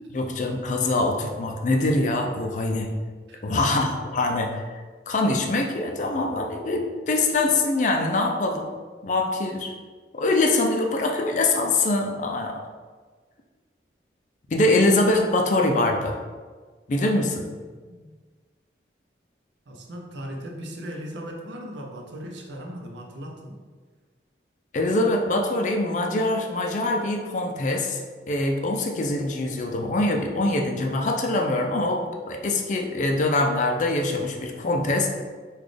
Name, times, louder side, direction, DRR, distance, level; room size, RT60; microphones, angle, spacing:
voice 1, 0.1-2.9 3.4-4.7 5.1-8.7 9.0-9.7 10.1-12.6 14.5-16.2 16.9-17.4 24.7-28.0 28.3-35.1, left 2 dB, 45° left, 2 dB, 0.4 m, -23 dB
voice 2, 3.3-3.7 17.7-18.1 19.7-23.5, equal, 80° right, 1 dB, 0.6 m, -38 dB
4.0 x 2.3 x 3.2 m, 1.4 s
head